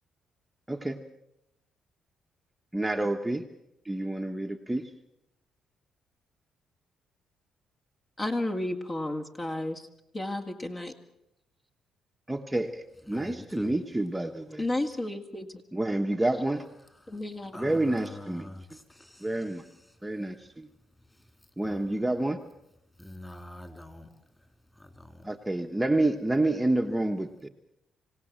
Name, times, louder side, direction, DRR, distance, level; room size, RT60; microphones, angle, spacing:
voice 1, 0.7-1.0 2.7-3.4 3.8-4.8 12.3-14.6 15.7-16.6 17.6-18.5 19.2-19.6 20.0-20.7 21.6-22.4 25.2-27.5, right 1 dB, 10° right, 3 dB, 1.2 m, -28 dB
voice 2, 8.2-9.9 10.1-10.9 14.6-15.6 17.1-17.8, left 1 dB, 30° left, 3 dB, 2.1 m, -32 dB
voice 3, 13.1-13.7 17.0-17.1 17.5-19.3 21.6-21.9 23.0-24.1 24.8-25.3, left 1 dB, 10° left, 7 dB, 3.4 m, -45 dB
26.5 x 17.0 x 7.5 m, 0.85 s
cardioid pair, 90°, 0 cm